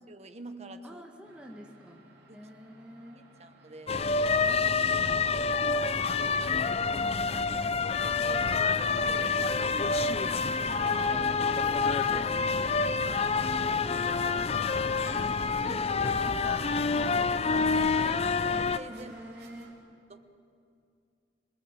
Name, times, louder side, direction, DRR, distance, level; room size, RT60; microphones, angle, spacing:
voice 1, 0.1-1.0 2.3-2.4 3.4-4.2 5.6-5.9 6.9-7.0 7.9-9.4 10.8-11.3 14.3-14.5 15.0-16.3 17.2-19.1 20.1-20.3, right 2 dB, 40° right, 8 dB, 1.2 m, -46 dB
voice 2, 0.8-2.0 2.3-3.3 4.4-7.8 9.9-11.3 11.8-13.6 14.2-17.6 18.9-19.7, equal, 5° right, 0 dB, 1.8 m, -49 dB
sound 1, 1.2-19.7, right 2 dB, 60° right, 4.0 m, -57 dB
sound 2, 3.9-18.8, left 4 dB, 35° left, 0.5 m, -27 dB
26.0 x 19.5 x 7.5 m, 2.5 s
head